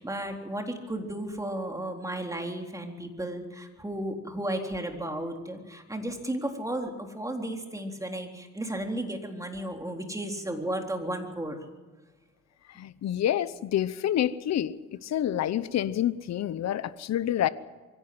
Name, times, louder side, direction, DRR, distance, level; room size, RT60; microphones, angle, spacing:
voice 1, 0.0-11.6, right 1 dB, 10° right, 3.9 m, -34 dB
voice 2, 12.8-14.7 15.0-17.5, left 11 dB, 60° left, 0.9 m, -28 dB
23.5 x 17.0 x 7.9 m
cardioid pair, 90°, 30 cm